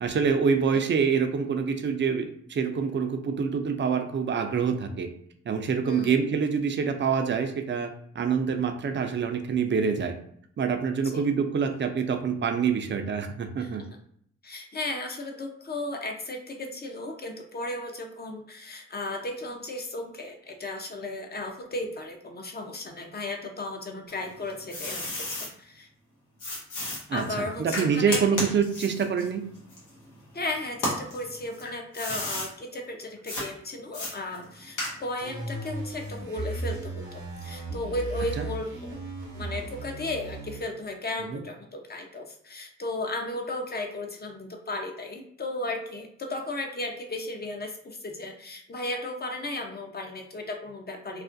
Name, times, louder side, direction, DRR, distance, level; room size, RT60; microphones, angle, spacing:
voice 1, 0.0-5.1 5.5-10.2 10.6-13.8 27.1-29.4 38.4-38.5 41.3-41.4, right 6 dB, 40° right, 6 dB, 0.5 m, -26 dB
voice 2, 5.8-6.1 11.0-11.2 13.6-13.7 14.4-25.9 27.1-28.2 30.3-39.0 39.3-51.2, left 2 dB, 35° left, 3 dB, 0.7 m, -35 dB
sound 1, 24.1-25.5 26.4-30.3 30.7-32.5 33.3-33.5 33.9-35.3, left 1 dB, 90° left, 0.8 m, -33 dB
sound 2, 35.2-40.6, right 2 dB, 90° right, 0.7 m, -36 dB
2.4 x 2.1 x 2.5 m, 0.66 s
supercardioid pair, 40°, 30 cm